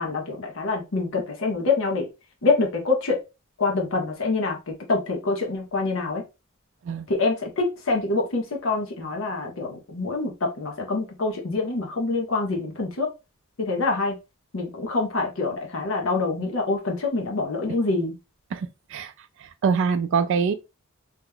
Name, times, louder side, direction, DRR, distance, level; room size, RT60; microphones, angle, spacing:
voice 1, 0.0-2.1 2.4-3.2 3.6-6.2 7.1-13.1 13.6-14.2 14.5-18.2, left 3 dB, 65° left, 0.8 m, -26 dB
voice 2, 18.5-19.1 19.4-20.5, right 5 dB, 60° right, 0.3 m, -24 dB
2.9 x 2.3 x 3.4 m
head